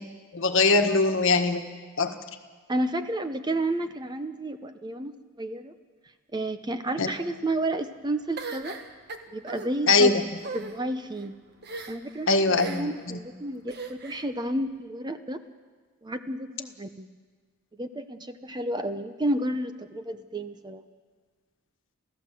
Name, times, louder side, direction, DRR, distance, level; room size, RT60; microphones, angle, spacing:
voice 1, 0.3-1.6 2.0-2.1 7.0-7.1 9.9-10.2 12.3-13.2, left 3 dB, 60° left, 6 dB, 1.5 m, -22 dB
voice 2, 2.7-5.7 6.3-8.8 9.3-10.2 10.5-11.3 11.9-15.4 16.0-17.2 17.8-20.8, right 1 dB, 20° right, 9 dB, 0.7 m, -31 dB
sound 1, 8.4-9.7 10.4-10.7 11.6-12.1 12.6-13.0 13.7-14.3, right 4 dB, 45° right, 1.4 m, -38 dB
28.5 x 15.5 x 7.6 m, 1.5 s
head